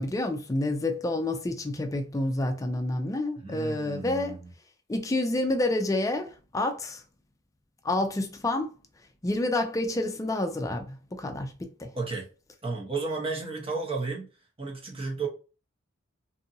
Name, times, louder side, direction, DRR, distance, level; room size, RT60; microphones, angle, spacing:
voice 1, 0.0-4.4 4.9-7.0 7.8-8.7 9.2-11.9, left 2 dB, 15° left, 0.4 m, -29 dB
voice 2, 3.4-4.5 11.9-12.3 12.6-14.3 14.6-15.3, right 3 dB, 30° right, 0.8 m, -33 dB
2.7 x 2.6 x 2.6 m
head